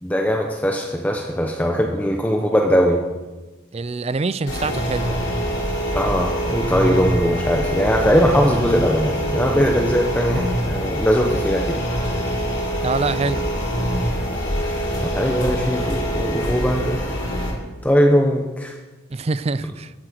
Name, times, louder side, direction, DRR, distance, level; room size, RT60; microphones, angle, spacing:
voice 1, 0.0-3.0 5.9-11.8 14.5-17.0 17.8-18.7, equal, 5° left, 1 dB, 0.9 m, -20 dB
voice 2, 3.7-5.3 12.8-13.5 19.1-19.9, right 3 dB, 30° right, 16 dB, 0.4 m, -25 dB
sound 1, 4.5-17.5, equal, 60° left, 5.7 m, -24 dB
13.5 x 8.8 x 6.4 m, 1.2 s
head